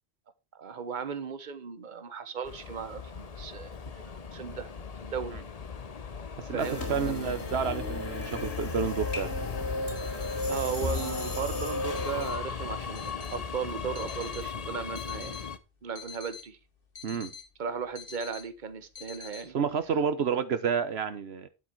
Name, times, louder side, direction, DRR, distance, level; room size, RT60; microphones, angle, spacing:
voice 1, 0.5-3.7 4.0-4.7 5.0-5.4 6.5-7.5 10.5-15.4 15.8-16.6 17.6-19.6 20.3-20.4, right 6 dB, 50° right, 1.2 m, -36 dB
Subway metro underground, 2.4-15.6, left 6 dB, 40° left, 0.9 m, -37 dB
voice 2, 6.4-9.3 17.0-17.3 19.5-21.5, right 6 dB, 75° right, 1.2 m, -30 dB
sound 1, 6.6-12.3, left 1 dB, 90° left, 3.7 m, -35 dB
sound 2, 9.9-19.8, left 6 dB, 60° left, 2.5 m, -48 dB
10.0 x 8.3 x 4.5 m
omnidirectional pair, 1.1 m